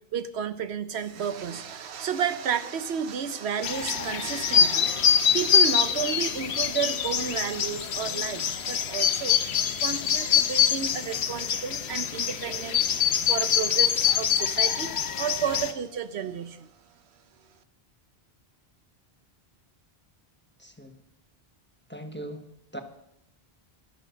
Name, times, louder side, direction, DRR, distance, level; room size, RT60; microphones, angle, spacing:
voice 1, 0.1-9.4 9.8-16.7, right 7 dB, 85° right, 11 dB, 1.1 m, -32 dB
sound 1, 3.6-15.7, left 8 dB, 85° left, 1.1 m, -25 dB
voice 2, 20.6-20.9 21.9-22.4 22.7-22.8, right 1 dB, 10° left, 6 dB, 1.1 m, -39 dB
12.0 x 11.0 x 6.4 m, 0.77 s
omnidirectional pair, 1.1 m